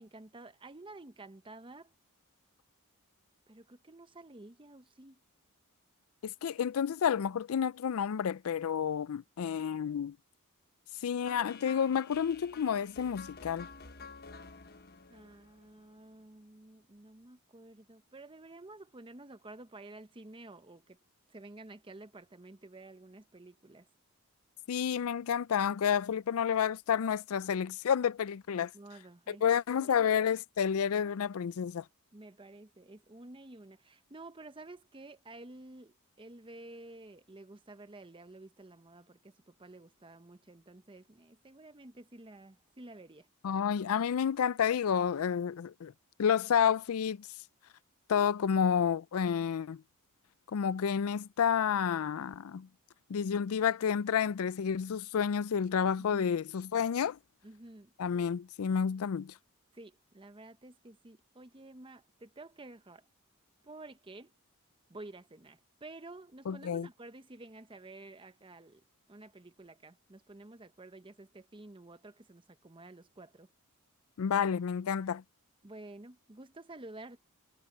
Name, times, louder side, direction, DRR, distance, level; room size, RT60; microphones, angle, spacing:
voice 1, 0.0-1.9 3.5-5.2 15.1-21.0 21.3-23.9 28.5-29.4 29.8-30.1 32.1-43.3 56.0-56.3 57.4-57.9 59.7-63.0 63.6-64.3 64.9-68.8 69.1-73.5 75.6-77.2, right 2 dB, 20° right, 0.8 m, -51 dB
voice 2, 6.2-10.2 11.0-13.7 24.7-28.7 29.3-31.8 43.4-45.9 46.2-47.3 48.1-49.8 50.5-52.7 53.1-57.2 58.0-59.3 66.5-66.9 74.2-75.2, left 7 dB, 70° left, 0.4 m, -30 dB
sound 1, 11.2-16.2, left 4 dB, 45° left, 1.2 m, -51 dB
head